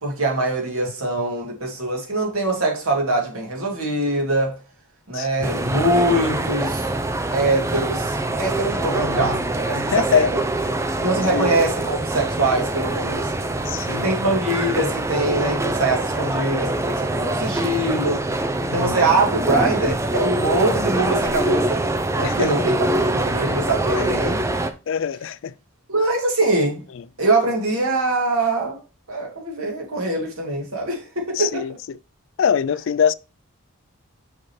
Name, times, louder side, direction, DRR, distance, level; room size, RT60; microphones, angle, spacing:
voice 1, 0.0-4.6 5.1-6.9 7.3-10.4 11.0-13.3 13.9-18.3 18.6-21.8 22.1-22.7 23.1-24.4 25.9-26.8 27.2-28.8 29.1-31.7, right 2 dB, 85° right, 2.5 m, -23 dB
voice 2, 5.1-5.7 8.9-9.4 9.8-10.3 10.7-10.8 11.3-11.5 13.7-14.1 18.7-19.0 22.2-22.5 24.0-24.1 24.9-25.5 31.4-32.0 32.4-33.1, left 7 dB, 60° left, 0.3 m, -24 dB
sound 1, 5.4-24.7, right 2 dB, 15° right, 0.5 m, -24 dB
6.5 x 5.7 x 3.1 m
head